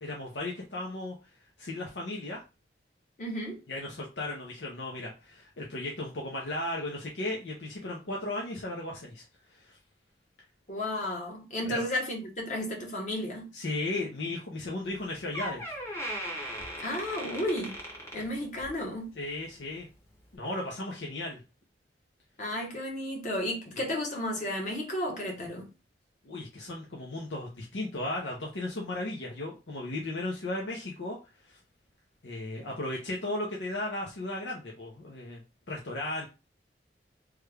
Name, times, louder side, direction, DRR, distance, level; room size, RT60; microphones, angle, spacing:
voice 1, 0.0-1.1 1.6-2.4 3.7-9.2 9.5-9.8 11.7-11.9 13.5-15.8 19.2-19.9 20.3-21.4 26.2-31.2 31.4-31.6 32.2-35.4 35.7-36.3, left 2 dB, 85° left, 0.7 m, -35 dB
voice 2, 3.2-3.6 10.7-13.5 16.8-17.8 18.1-19.1 22.4-25.7, left 1 dB, 45° left, 1.1 m, -33 dB
Door, 14.9-15.0 15.3-18.8 19.2-19.5 20.2-20.3, equal, 15° left, 0.8 m, -38 dB
3.3 x 2.3 x 3.3 m
head